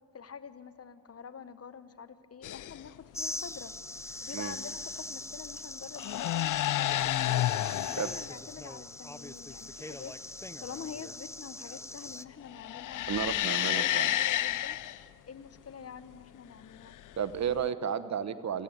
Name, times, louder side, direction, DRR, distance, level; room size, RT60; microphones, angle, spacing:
voice 1, 0.1-3.7 4.2-7.3 7.7-10.2 10.6-13.1 13.5-14.8 15.3-17.0, left 6 dB, 50° left, 13 dB, 1.1 m, -46 dB
sound 1, 2.4-2.9 4.4-4.8 5.8-8.3 12.4-15.0 16.9-17.7, left 14 dB, 75° left, 0.5 m, -30 dB
sound 2, 3.1-12.2, left 2 dB, 10° left, 0.6 m, -42 dB
voice 2, 13.1-14.1 17.2-18.6, right 8 dB, 60° right, 13 dB, 1.1 m, -32 dB
28.0 x 14.0 x 9.3 m, 2.7 s
cardioid pair, 65°, 31 cm